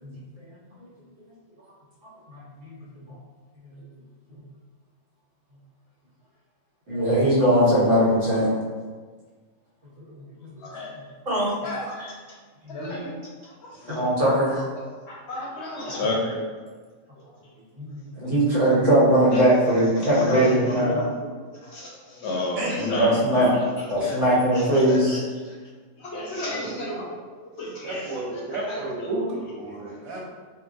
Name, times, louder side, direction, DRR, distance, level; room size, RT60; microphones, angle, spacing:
voice 1, 2.3-2.8 6.9-8.5 11.3-11.6 12.0-12.1 12.7-12.8 13.9-14.6 17.8-21.0 22.8-23.5 23.9-25.2, right 1 dB, 65° right, -7 dB, 1.4 m, -20 dB
voice 2, 12.7-13.1 13.6-14.1 15.1-16.4 19.3-19.4 20.0-21.1 21.6-24.2 24.5-25.2 26.0-27.1 27.6-28.1 28.7-29.1, left 1 dB, 65° left, -4 dB, 0.8 m, -31 dB
voice 3, 27.8-30.2, right 2 dB, 85° right, -3 dB, 1.1 m, -31 dB
3.9 x 2.2 x 2.5 m, 1.4 s
omnidirectional pair, 1.4 m